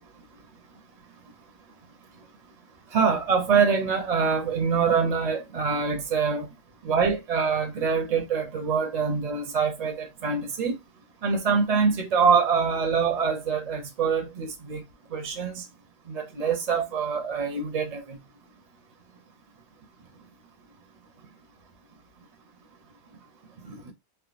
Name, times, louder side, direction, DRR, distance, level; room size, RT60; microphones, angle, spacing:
voice 1, 2.9-6.5 6.9-10.8 11.2-14.8 15.1-15.6 16.1-18.2 23.9-24.0, right 5 dB, 50° right, 0.6 m, -25 dB
3.4 x 2.1 x 2.3 m
omnidirectional pair, 1.1 m